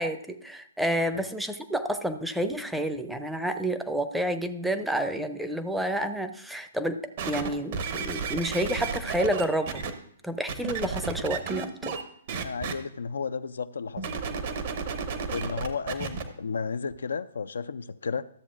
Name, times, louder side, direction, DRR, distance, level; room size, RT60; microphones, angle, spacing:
voice 1, 0.0-7.0 7.3-9.8 10.2-12.0, right 1 dB, 5° right, 0.6 m, -29 dB
sound 1, 7.2-9.9 10.5-12.0 12.3-12.7 14.0-16.2 16.9-17.0, right 5 dB, 55° right, 1.0 m, -32 dB
voice 2, 12.4-14.1 15.3-18.3, left 5 dB, 75° left, 0.3 m, -33 dB
13.5 x 7.2 x 2.5 m
hypercardioid pair, 130°, 0 cm